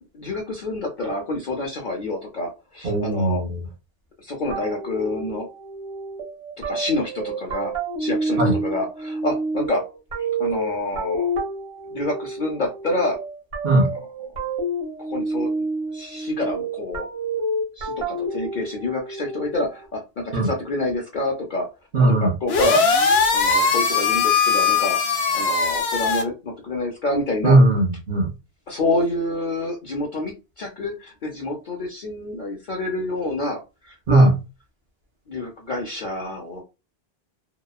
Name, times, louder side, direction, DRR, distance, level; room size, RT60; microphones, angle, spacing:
voice 1, 0.1-3.4 4.2-5.5 6.6-7.7 8.0-9.8 10.2-11.3 11.9-13.2 13.8-13.9 15.0-15.5 15.9-17.1 17.8-21.7 22.1-22.8 23.3-25.0 25.3-27.6 28.7-34.3 35.3-36.6, left 2 dB, 55° left, 0 dB, 0.7 m, -27 dB
voice 2, 2.8-3.6 8.4-8.5 13.6-13.9 20.3-20.5 21.9-22.3 27.4-28.3 34.1-34.3, right 2 dB, 70° right, -1 dB, 0.9 m, -17 dB
sound 1, 4.5-19.9, right 2 dB, 90° right, 1.3 m, -29 dB
sound 2, 22.5-26.2, left 5 dB, 80° left, 0.9 m, -20 dB
2.9 x 2.1 x 2.3 m, 0.27 s
omnidirectional pair, 1.1 m